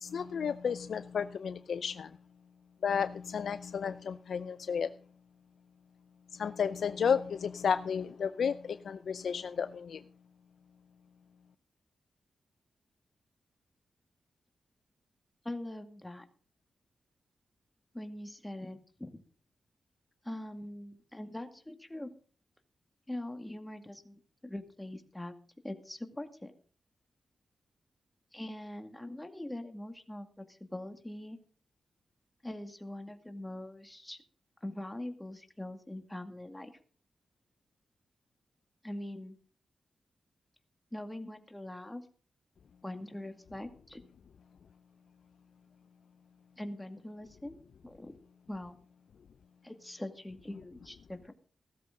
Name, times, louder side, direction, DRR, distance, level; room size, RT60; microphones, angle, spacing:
voice 1, 0.0-2.1 2.8-4.9 6.3-10.0, left 7 dB, 75° left, 12 dB, 0.6 m, -32 dB
voice 2, 15.4-16.3 17.9-19.1 20.2-22.1 23.1-25.3 25.6-26.5 28.3-31.4 32.4-34.2 34.6-36.7 38.8-39.3 40.9-42.0 42.8-44.0 46.6-48.2 48.5-48.8 49.6-51.3, left 1 dB, 10° left, 7 dB, 2.2 m, -42 dB
16.5 x 13.0 x 3.9 m, 0.42 s
cardioid pair, 75°, 0 cm